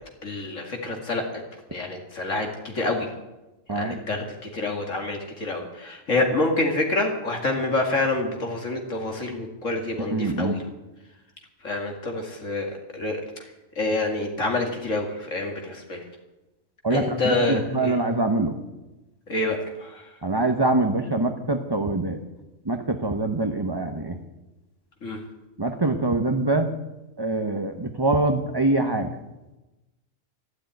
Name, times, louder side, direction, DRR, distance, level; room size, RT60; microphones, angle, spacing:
voice 1, 0.2-1.4 1.7-3.1 3.7-10.6 11.6-16.1 16.9-18.0 19.3-20.2 25.0-25.2, left 2 dB, 65° left, 2 dB, 2.4 m, -27 dB
voice 2, 10.1-10.6 16.8-18.5 20.2-22.2 22.6-24.2 25.6-26.7 27.2-29.1, right 2 dB, 20° right, 5 dB, 0.9 m, -24 dB
13.0 x 11.5 x 9.5 m, 1.0 s
omnidirectional pair, 1.4 m